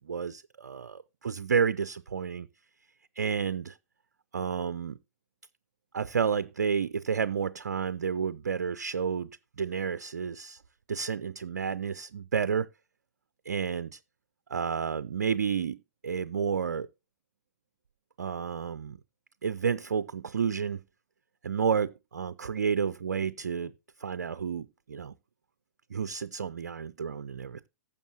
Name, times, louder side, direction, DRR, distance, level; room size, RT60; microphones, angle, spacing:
voice 1, 0.0-2.5 3.2-3.8 4.3-5.0 5.9-9.3 9.6-10.6 10.9-12.7 13.5-14.0 14.5-15.8 16.0-16.9 18.2-19.0 19.4-20.8 21.4-23.7 24.0-25.1 25.9-27.7, right 6 dB, 70° right, 0.5 m, -30 dB
15.5 x 6.6 x 2.8 m
figure-of-eight pair, 110°, 9 cm